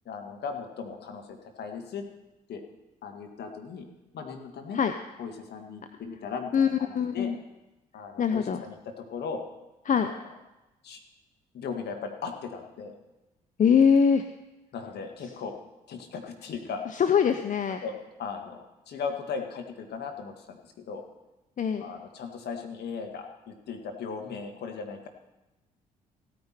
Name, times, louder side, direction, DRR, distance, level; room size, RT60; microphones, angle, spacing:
voice 1, 0.1-2.0 2.5-2.6 3.0-3.9 4.1-4.8 5.2-7.3 7.9-9.4 9.9-10.1 10.8-11.0 11.5-12.9 14.7-15.5 15.9-16.8 17.8-21.1 21.8-25.1, left 5 dB, 55° left, 4 dB, 1.9 m, -37 dB
voice 2, 6.9-7.3 8.2-8.6 9.9-10.1 13.6-14.2 16.9-17.8 21.6-21.9, left 7 dB, 40° left, 8 dB, 0.8 m, -23 dB
16.0 x 9.5 x 4.5 m, 1.0 s
hypercardioid pair, 50°, 20 cm